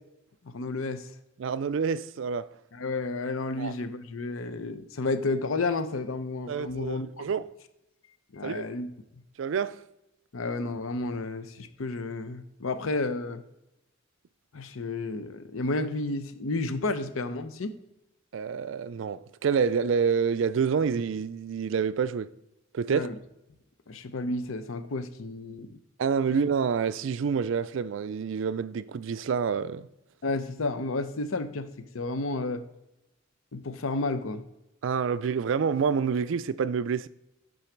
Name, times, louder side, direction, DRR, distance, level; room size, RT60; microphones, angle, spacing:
voice 1, 0.4-1.1 2.7-7.2 8.3-8.9 10.3-13.4 14.5-17.7 22.9-23.2 23.9-25.8 26.3-26.4 30.2-31.7 31.9-32.6 33.5-34.4, left 3 dB, 85° left, 0.7 m, -31 dB
voice 2, 1.4-2.5 3.6-3.7 6.5-7.5 8.4-8.7 9.4-9.8 18.3-22.3 22.7-23.1 26.0-29.9 34.8-37.1, right 6 dB, 65° right, 0.4 m, -28 dB
11.0 x 3.9 x 4.5 m
head